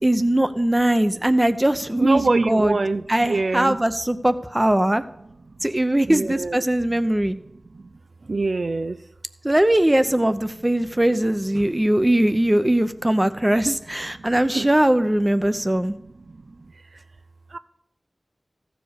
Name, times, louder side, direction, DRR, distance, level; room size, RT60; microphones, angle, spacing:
voice 1, 0.0-2.8 3.1-5.0 5.6-7.4 9.4-16.0, right 1 dB, 20° right, 11 dB, 0.7 m, -20 dB
voice 2, 2.0-3.8 6.1-6.6 8.3-9.0 14.5-14.7 17.5-17.6, right 3 dB, 70° right, 11 dB, 0.3 m, -23 dB
14.5 x 5.0 x 6.5 m, 0.81 s
wide cardioid pair, 65°, 0 cm